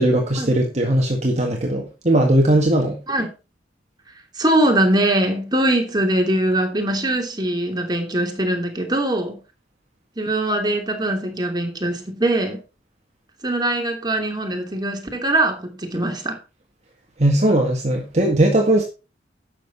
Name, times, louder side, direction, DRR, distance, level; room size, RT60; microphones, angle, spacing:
voice 1, 0.0-3.0 17.2-18.8, right 1 dB, 40° right, 1.8 m, -18 dB
voice 2, 4.4-9.4 10.2-12.6 13.4-16.4, right 1 dB, 25° right, 2.9 m, -22 dB
12.0 x 7.9 x 4.1 m
head